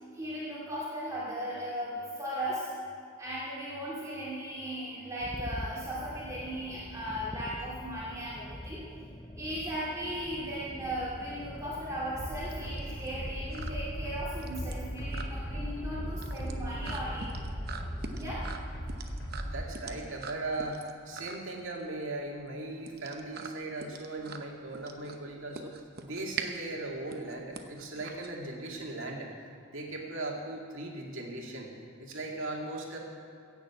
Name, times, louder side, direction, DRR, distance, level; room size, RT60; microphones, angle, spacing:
voice 1, 0.1-2.7 3.2-8.8 9.4-17.3 18.1-18.4, equal, 15° right, -8 dB, 2.4 m, -37 dB
sound 1, 5.2-18.6, left 1 dB, 10° left, 0.4 m, -44 dB
sound 2, 11.1-28.8, right 5 dB, 45° right, 0.8 m, -44 dB
sound 3, 12.2-19.7, equal, 55° left, 3.8 m, -38 dB
voice 2, 19.4-20.8 21.1-25.8 26.0-29.3 29.7-31.7 32.0-33.0, right 2 dB, 65° right, -1 dB, 2.2 m, -38 dB
15.5 x 7.0 x 8.3 m, 2.4 s
head